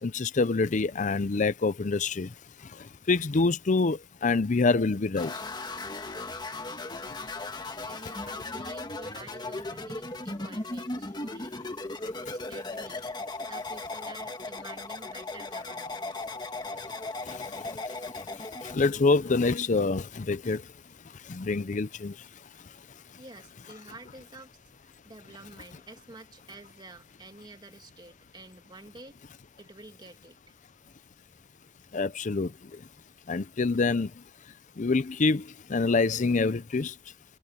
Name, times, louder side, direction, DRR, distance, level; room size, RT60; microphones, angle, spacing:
voice 1, 0.0-5.4 16.8-16.9 17.2-20.7 21.0-22.8 31.9-32.9 33.3-37.0, left 3 dB, 40° left, 0.5 m, -27 dB
sound 1, 5.2-18.8, left 2 dB, 20° left, 1.4 m, -37 dB
voice 2, 7.9-11.6 12.3-13.0 13.4-16.3 22.7-22.8 23.2-24.5 24.8-29.2 29.6-30.5, right 2 dB, 25° right, 2.6 m, -49 dB
head